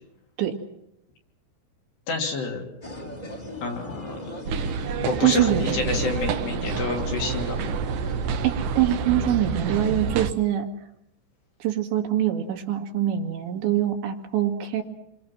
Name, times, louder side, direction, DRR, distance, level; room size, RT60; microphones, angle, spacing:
voice 1, 2.1-2.7 3.6-4.2 5.0-7.6, left 4 dB, 75° left, 1 dB, 5.3 m, -28 dB
sound 1, 2.8-8.4, left 1 dB, 15° left, 1.5 m, -38 dB
sound 2, 4.5-10.3, right 6 dB, 70° right, 2.1 m, -28 dB
voice 2, 5.2-5.7 8.4-10.7 11.6-14.8, right 11 dB, 85° right, 4 dB, 4.4 m, -24 dB
28.5 x 24.0 x 6.1 m, 0.82 s
omnidirectional pair, 5.0 m